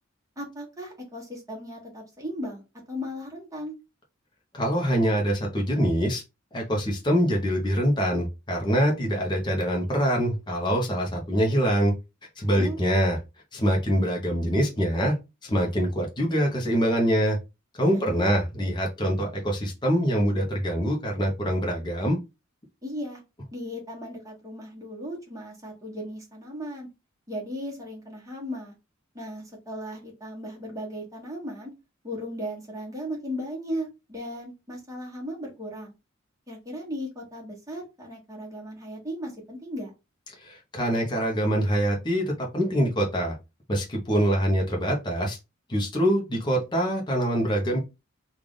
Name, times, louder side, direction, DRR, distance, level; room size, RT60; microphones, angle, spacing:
voice 1, 0.4-2.6 2.9-3.8 12.5-12.8 17.9-18.2 22.8-23.2 23.5-26.9 27.3-28.7 29.1-31.7 32.0-35.9 36.5-39.9, equal, 15° right, -2 dB, 1.3 m, -36 dB
voice 2, 4.5-6.2 6.5-11.9 12.4-13.2 13.5-15.2 15.4-17.4 17.8-22.2 40.4-43.3 43.7-45.4 45.7-47.8, equal, 20° left, 0 dB, 0.8 m, -24 dB
3.3 x 2.5 x 3.7 m, 0.26 s
head